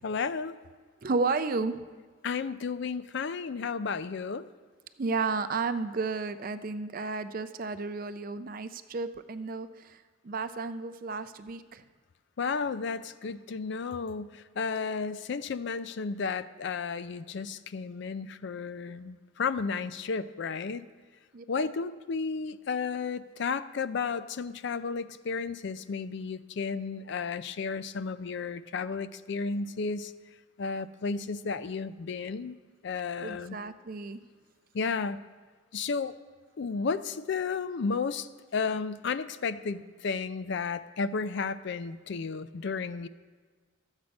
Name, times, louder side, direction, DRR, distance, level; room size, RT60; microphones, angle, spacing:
voice 1, 0.0-0.6 2.2-4.5 12.4-20.8 21.5-30.1 30.6-32.6 32.8-33.6 34.7-35.2 35.7-36.1 36.6-38.3 38.5-43.1, left 5 dB, 60° left, 13 dB, 0.4 m, -33 dB
voice 2, 1.0-1.8 5.0-10.0 10.2-11.8 21.3-21.7 33.2-34.2, right 4 dB, 45° right, 12 dB, 0.4 m, -32 dB
12.5 x 8.1 x 5.2 m, 1.5 s
head